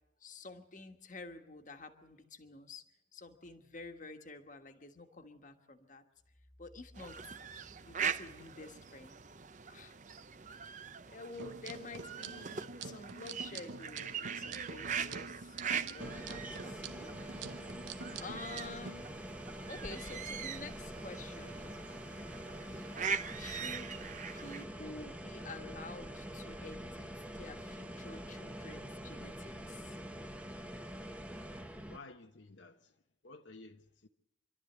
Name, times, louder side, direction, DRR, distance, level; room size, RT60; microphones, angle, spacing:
voice 1, 0.2-2.8 3.1-6.0 6.6-7.2 7.8-9.2 9.7-9.9 11.1-17.2 18.2-19.1 19.7-22.0 23.4-24.0 24.3-30.0, left 3 dB, 40° left, 6 dB, 1.4 m, -49 dB
sound 1, 6.9-24.6, right 7 dB, 40° right, 0.7 m, -42 dB
sound 2, 11.3-18.9, right 4 dB, 75° right, 1.0 m, -47 dB
sound 3, 16.0-32.0, equal, 5° right, 0.9 m, -45 dB
voice 2, 31.9-32.9 33.2-34.1, left 3 dB, 70° left, 4 dB, 1.0 m, -53 dB
27.0 x 12.5 x 8.0 m, 0.85 s
head